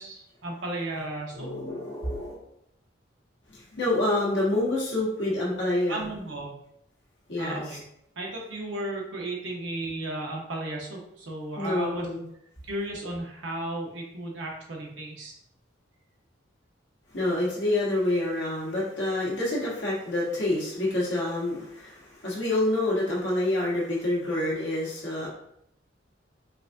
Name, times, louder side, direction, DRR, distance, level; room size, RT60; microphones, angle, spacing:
voice 1, 0.0-1.5 5.9-6.6 7.4-7.8 8.2-12.1 12.6-15.3, right 1 dB, 80° right, -1 dB, 0.9 m, -34 dB
voice 2, 1.3-2.4 3.5-6.1 7.3-7.8 11.6-12.2 17.1-25.3, left 1 dB, 65° left, -5 dB, 1.4 m, -27 dB
4.7 x 2.7 x 2.4 m, 0.74 s
head